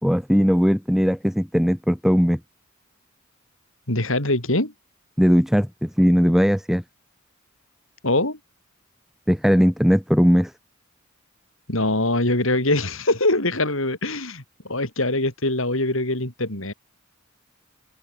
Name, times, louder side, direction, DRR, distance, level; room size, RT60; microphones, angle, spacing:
voice 1, 0.0-2.4 5.2-6.8 9.3-10.5, equal, ahead, 2.2 m, -19 dB
voice 2, 3.9-4.7 8.0-8.4 11.7-16.7, left 2 dB, 70° left, 5.6 m, -23 dB
open air
head